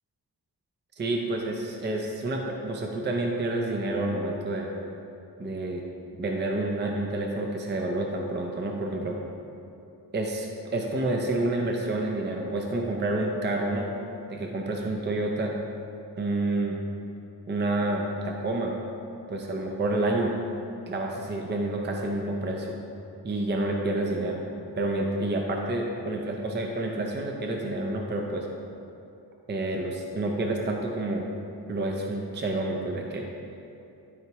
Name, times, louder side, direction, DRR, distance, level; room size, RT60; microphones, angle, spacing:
voice 1, 1.0-4.7 5.4-5.8 6.2-9.2 10.1-13.9 14.3-15.5 16.2-16.8 17.5-18.7 19.3-20.4 20.9-22.8 23.2-24.4 24.7-28.5 29.5-31.3 31.7-33.3, right 2 dB, 25° right, 1 dB, 0.6 m, -29 dB
12.5 x 4.5 x 3.0 m, 2.7 s
wide cardioid pair, 135°, 41 cm